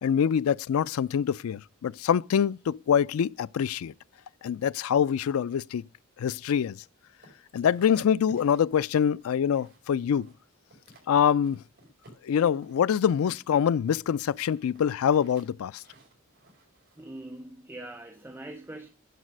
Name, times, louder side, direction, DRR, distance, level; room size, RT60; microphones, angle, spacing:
voice 1, 0.0-3.9 4.4-5.9 6.2-6.8 7.5-10.3 11.1-11.6 12.2-15.8, left 8 dB, 85° left, 0.3 m, -25 dB
sound 1, 7.2-9.9 10.2-11.1 11.4-12.8 13.2-17.0, right 1 dB, 50° right, 5.2 m, -55 dB
voice 2, 17.0-18.9, right 1 dB, 10° right, 0.7 m, -42 dB
11.0 x 4.0 x 6.2 m
head